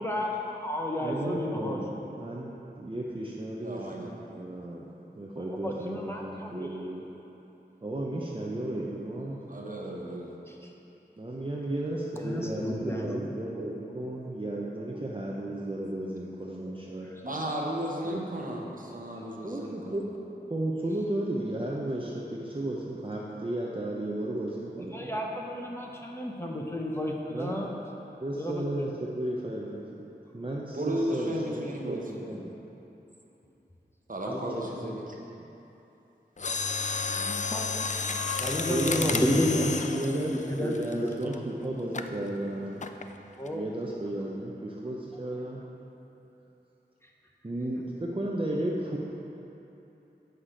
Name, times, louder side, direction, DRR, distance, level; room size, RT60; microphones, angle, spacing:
voice 1, 0.0-1.8 5.4-6.9 10.5-10.6 12.1-13.6 17.3-17.4 24.9-27.8 28.3-28.7 34.2-34.7 37.2-37.7 38.4-40.8 41.0-41.3 41.6-41.8 42.6-42.7 43.4-44.1, left 1 dB, 15° left, -1 dB, 0.7 m, -32 dB
voice 2, 1.0-4.9 5.2-7.0 7.8-9.4 11.2-17.1 18.0-18.2 19.4-20.1 20.4-25.2 27.3-27.6 28.2-30.0 30.3-32.4 34.6-35.2 38.6-42.8 43.5-45.6 47.4-49.0, right 1 dB, 30° right, -4 dB, 0.6 m, -34 dB
voice 3, 3.6-4.1 9.5-10.3 17.2-20.0 30.7-32.4 34.1-35.2, right 1 dB, 50° right, -1 dB, 0.9 m, -34 dB
Mechanisms, 36.4-41.3 41.9-42.2 42.8-43.1 43.5-43.6, left 4 dB, 45° left, 0.4 m, -32 dB
6.6 x 5.7 x 5.0 m, 3.0 s
wide cardioid pair, 55°, 18 cm